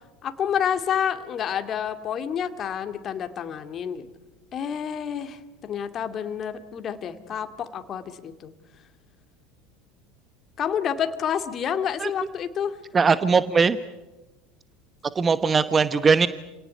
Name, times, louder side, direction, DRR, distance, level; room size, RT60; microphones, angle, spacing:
voice 1, 0.2-4.1 4.5-8.5 10.6-12.8, left 8 dB, 40° left, 8 dB, 2.1 m, -29 dB
voice 2, 12.9-13.8 15.1-16.3, right 5 dB, 25° right, 14 dB, 1.0 m, -20 dB
28.0 x 18.5 x 9.8 m, 1.1 s
hypercardioid pair, 75°, 0 cm